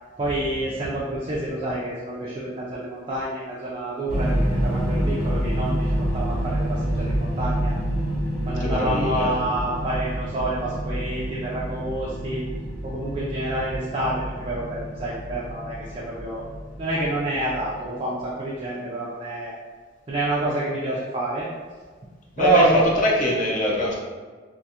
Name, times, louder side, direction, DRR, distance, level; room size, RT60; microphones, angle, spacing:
voice 1, 0.2-7.8 8.5-12.4 12.8-16.4 16.8-19.5 20.1-21.5 22.4-22.9, right 2 dB, 30° right, -6 dB, 0.3 m, -27 dB
sound 1, 4.1-18.1, equal, 85° left, 1.1 m, -28 dB
voice 2, 8.6-9.3 22.4-23.9, left 1 dB, 40° left, -4 dB, 0.6 m, -23 dB
2.4 x 2.3 x 2.7 m, 1.5 s
head